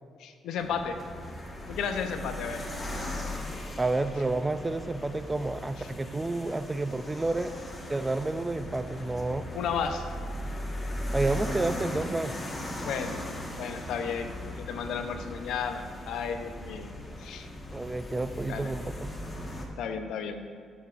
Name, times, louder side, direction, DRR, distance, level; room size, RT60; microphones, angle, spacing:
voice 1, 0.2-1.0 1.7-2.7 5.8-5.9 9.5-10.1 12.8-13.2 13.6-16.9 17.2-17.5 18.5-18.7 19.8-20.4, left 6 dB, 80° left, 7 dB, 0.7 m, -33 dB
sound 1, 0.6-19.7, left 1 dB, 25° left, 1.4 m, -38 dB
voice 2, 3.8-7.5 7.9-9.4 11.1-12.3 17.7-19.1, right 2 dB, 20° right, 11 dB, 0.4 m, -30 dB
14.0 x 7.1 x 2.5 m, 2.2 s
cardioid pair, 90°, 0 cm